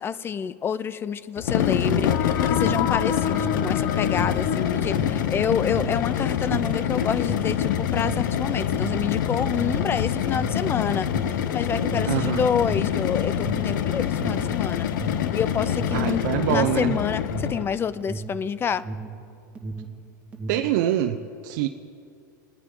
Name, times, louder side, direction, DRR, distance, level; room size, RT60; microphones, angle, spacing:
voice 1, 0.0-14.9 15.3-18.8, left 7 dB, 20° left, 17 dB, 0.5 m, -28 dB
sound 1, 1.4-17.8, left 9 dB, 75° left, 0.8 m, -25 dB
sound 2, 1.8-5.6, left 8 dB, 45° left, 0.8 m, -30 dB
Alarm, 1.8-19.2 19.5-20.8, right 3 dB, 15° right, 1.7 m, -35 dB
voice 2, 12.1-12.4 15.9-17.0 20.5-21.2 21.4-21.7, right 12 dB, 65° right, 5 dB, 0.7 m, -24 dB
22.0 x 9.7 x 3.8 m, 2.4 s
supercardioid pair, 120°, 10 cm